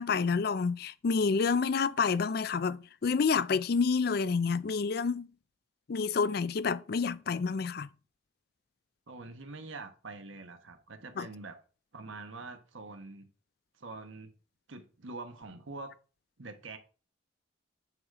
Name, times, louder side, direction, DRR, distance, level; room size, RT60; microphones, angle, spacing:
voice 1, 0.0-5.3 5.9-7.9 11.2-11.3, left 5 dB, 50° left, 0.4 m, -28 dB
voice 2, 9.1-11.6 11.9-13.3 13.8-14.3 14.7-15.9 16.4-16.8, right 3 dB, 75° right, 1.1 m, -45 dB
8.9 x 3.7 x 4.8 m
head